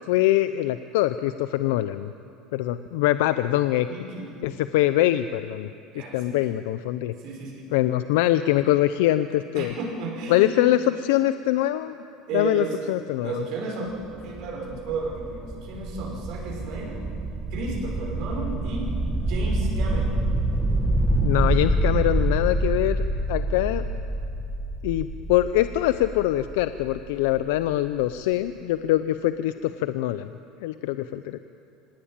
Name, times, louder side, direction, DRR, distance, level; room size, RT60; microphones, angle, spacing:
voice 1, 0.1-2.1 2.5-3.9 4.4-5.7 6.1-7.1 7.7-9.7 10.3-12.0 12.3-13.3 21.2-23.9 24.8-30.3 30.6-31.4, left 14 dB, 85° left, 12 dB, 0.7 m, -23 dB
voice 2, 3.9-4.3 5.9-6.4 7.2-7.7 9.5-10.6 12.3-12.8 13.2-17.0 17.5-20.2, right 3 dB, 50° right, -3 dB, 5.9 m, -33 dB
sound 1, 13.9-27.6, right 1 dB, 10° right, 1.8 m, -27 dB
25.5 x 19.0 x 9.0 m, 2.6 s
cardioid pair, 160°, 0 cm